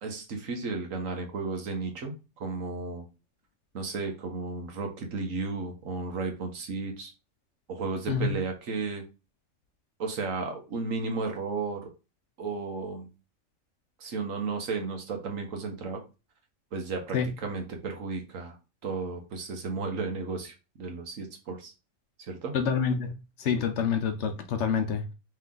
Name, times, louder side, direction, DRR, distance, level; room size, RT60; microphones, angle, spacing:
voice 1, 0.0-3.0 3.7-7.1 7.7-9.0 10.0-11.9 12.4-13.1 14.0-16.0 16.7-18.6 18.8-21.7 22.2-22.5, right 4 dB, 80° right, 1.4 m, -34 dB
voice 2, 22.5-23.1 23.4-25.1, left 6 dB, 65° left, 0.9 m, -27 dB
3.4 x 3.3 x 3.7 m
omnidirectional pair, 1.4 m